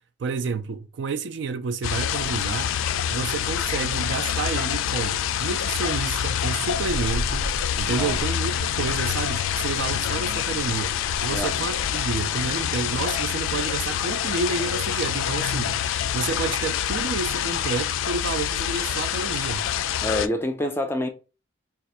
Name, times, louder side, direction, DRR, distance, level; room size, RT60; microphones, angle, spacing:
voice 1, 0.2-2.8 3.1-7.5 7.8-15.8 16.1-19.6, right 5 dB, 65° right, 0.4 m, -30 dB
sound 1, 1.8-20.3, left 9 dB, 85° left, 0.3 m, -26 dB
sound 2, 6.7-11.9, equal, 85° right, 1.0 m, -36 dB
voice 2, 7.8-8.2 11.3-11.6 20.0-21.1, left 1 dB, 10° left, 0.4 m, -27 dB
2.5 x 2.4 x 4.1 m
head